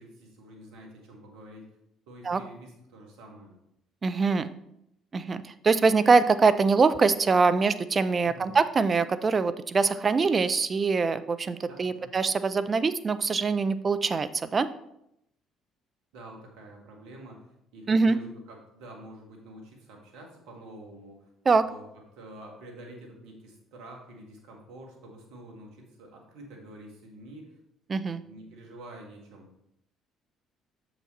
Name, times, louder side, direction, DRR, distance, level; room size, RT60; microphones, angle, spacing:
voice 1, 0.0-1.7 2.1-3.6 8.2-8.5 11.7-12.1 16.1-17.4 17.7-21.2 21.6-21.8 22.1-27.6 28.2-29.5, right 1 dB, 75° right, 1 dB, 1.8 m, -47 dB
voice 2, 4.0-4.5 5.1-14.7 17.9-18.2 21.5-21.6 27.9-28.2, right 4 dB, 35° right, 13 dB, 0.5 m, -23 dB
7.0 x 5.9 x 4.1 m, 0.79 s
hypercardioid pair, 55°, 0 cm